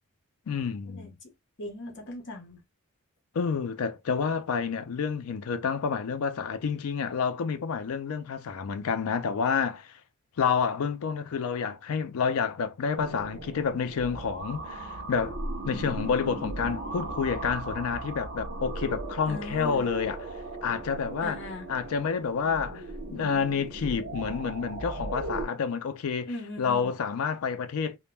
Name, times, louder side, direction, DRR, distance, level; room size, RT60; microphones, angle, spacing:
voice 1, 0.5-1.2 3.3-9.9 10.4-15.4 15.7-20.2 20.6-21.4 21.7-22.8 23.1-26.3 26.6-28.0, left 6 dB, 75° left, 0.4 m, -29 dB
voice 2, 1.6-2.6 19.3-19.9 21.2-21.7 26.3-26.9, left 1 dB, 55° left, 0.9 m, -38 dB
sound 1, 13.0-25.5, right 2 dB, 55° right, 0.8 m, -37 dB
2.2 x 2.1 x 3.1 m
head